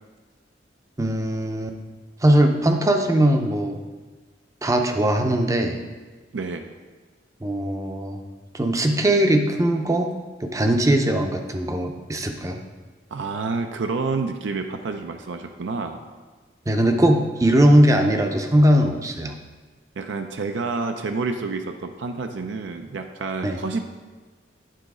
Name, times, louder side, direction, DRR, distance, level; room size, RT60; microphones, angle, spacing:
voice 1, 1.0-1.8 2.2-3.8 4.6-5.8 7.4-8.2 8.5-10.1 10.4-12.6 16.7-19.3 23.4-23.6, right 1 dB, 15° right, 4 dB, 0.5 m, -20 dB
voice 2, 6.3-6.6 13.1-16.0 20.0-24.0, right 4 dB, 75° right, 6 dB, 0.5 m, -29 dB
9.2 x 4.0 x 4.8 m, 1.3 s
head